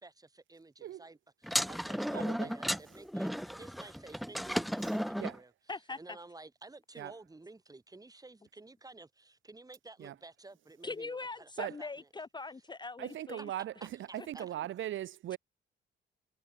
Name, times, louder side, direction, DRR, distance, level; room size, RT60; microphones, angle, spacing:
voice 1, 0.0-5.5 6.0-11.5 11.8-11.9 13.4-13.5 13.8-14.5, right 2 dB, 20° right, 5.9 m, -52 dB
sound 1, 1.4-5.4, equal, ahead, 0.5 m, -34 dB
voice 2, 2.1-2.5 4.8-5.4 7.0-7.1 10.0-10.1 11.6-11.8 13.0-15.4, right 12 dB, 75° right, 3.0 m, -39 dB
voice 3, 10.8-13.5 14.2-14.3, left 3 dB, 20° left, 0.9 m, -41 dB
cardioid pair, 90°, 20 cm